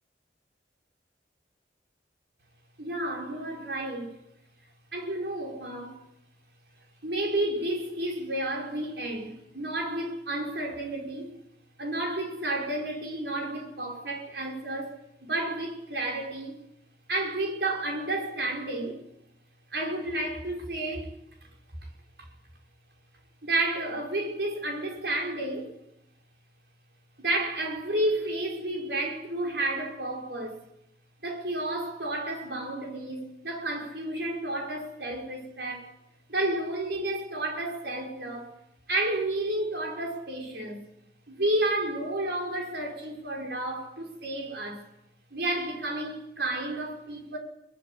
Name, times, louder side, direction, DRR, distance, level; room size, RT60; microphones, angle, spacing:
voice 1, 2.8-4.1 4.9-6.0 7.0-11.3 11.8-14.9 15.2-16.5 17.1-19.0 19.7-21.1 23.4-25.7 27.2-30.6 31.2-35.9 36.3-38.5 38.9-40.8 41.3-44.8 45.3-47.4, right 1 dB, 70° right, 5.8 m, -31 dB
22.0 x 20.0 x 8.6 m
head